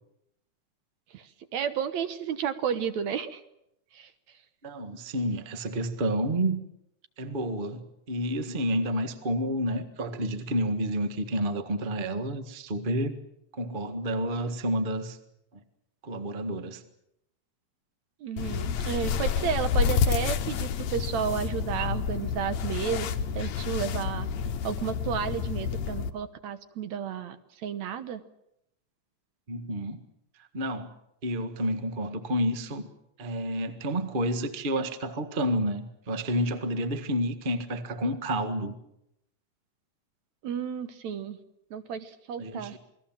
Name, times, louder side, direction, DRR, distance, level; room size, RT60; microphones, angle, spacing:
voice 1, 1.5-3.4 3.9-4.1 18.2-23.1 23.4-24.3 24.6-27.4 27.6-28.2 40.4-41.4 41.7-42.8, right 8 dB, 65° right, 11 dB, 2.3 m, -32 dB
voice 2, 4.6-6.6 7.2-13.2 13.5-15.2 16.0-16.8 29.5-30.0 30.4-30.9 31.2-32.9 33.2-38.8 42.4-42.8, equal, 30° right, 8 dB, 1.0 m, -30 dB
sound 1, 18.4-26.1, left 7 dB, 70° left, 2.3 m, -29 dB
28.0 x 20.0 x 7.5 m, 0.80 s
omnidirectional pair, 3.6 m